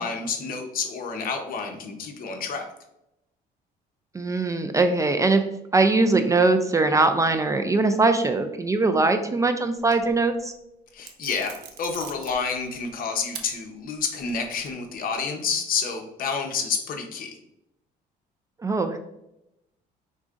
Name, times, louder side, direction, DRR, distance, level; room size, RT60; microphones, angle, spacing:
voice 1, 0.0-2.7 10.9-17.4, left 5 dB, 55° left, 4 dB, 0.9 m, -29 dB
voice 2, 4.1-5.4 5.7-10.5 18.6-19.0, right 3 dB, 20° right, 7 dB, 0.3 m, -21 dB
sound 1, 9.8-10.4 11.0-12.8 13.3-13.5 13.9-14.9, right 8 dB, 80° right, 0.7 m, -42 dB
5.0 x 3.7 x 2.4 m, 0.86 s
cardioid pair, 110°, 17 cm